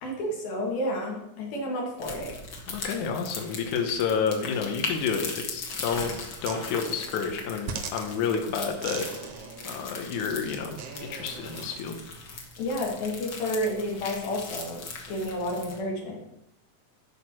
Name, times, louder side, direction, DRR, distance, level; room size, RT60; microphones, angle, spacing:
voice 1, 0.0-2.3 12.6-14.8 15.1-16.2, left 1 dB, 90° left, -2 dB, 4.2 m, -30 dB
sound 1, 2.0-15.8, left 3 dB, 45° left, 1.7 m, -39 dB
voice 2, 2.7-9.1 9.6-12.0, left 6 dB, 65° left, 3 dB, 2.3 m, -30 dB
sound 2, 6.4-11.8, right 6 dB, 70° right, 1.5 m, -41 dB
12.5 x 5.1 x 6.2 m, 0.86 s
omnidirectional pair, 4.1 m